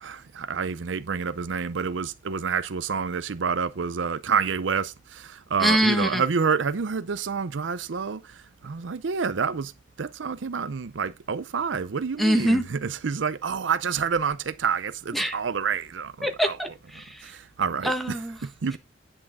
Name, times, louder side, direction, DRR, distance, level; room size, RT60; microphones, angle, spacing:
voice 1, 0.0-8.4 8.6-9.7 10.0-16.6 17.2-17.9 18.4-18.8, right 6 dB, 75° right, 0.6 m, -28 dB
voice 2, 5.6-6.2 12.2-12.6 15.1-15.4 16.2-17.3 17.8-18.4, equal, ahead, 1.3 m, -24 dB
10.0 x 6.4 x 3.6 m
head